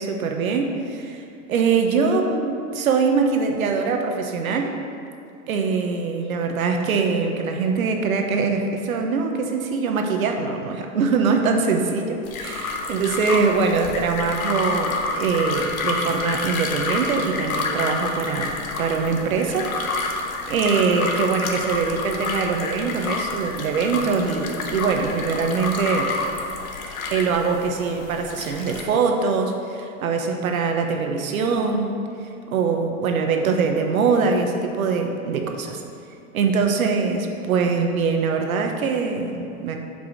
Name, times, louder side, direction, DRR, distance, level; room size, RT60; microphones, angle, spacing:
voice 1, 0.0-4.7 5.5-18.5 18.8-20.1 20.5-26.1 27.1-35.8 36.3-39.8, right 5 dB, 85° right, 3 dB, 1.2 m, -23 dB
sound 1, 12.2-28.8, left 3 dB, 85° left, 1.3 m, -28 dB
6.3 x 5.5 x 6.6 m, 2.4 s
supercardioid pair, 155°, 41 cm